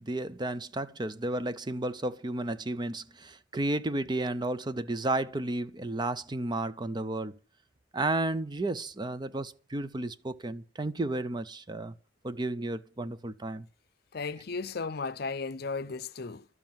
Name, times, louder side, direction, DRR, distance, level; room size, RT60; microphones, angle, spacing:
voice 1, 0.0-7.4 7.9-11.9 12.2-13.7, right 2 dB, 25° right, 0.5 m, -32 dB
voice 2, 14.1-16.5, left 4 dB, 55° left, 0.6 m, -35 dB
12.5 x 7.5 x 8.9 m
head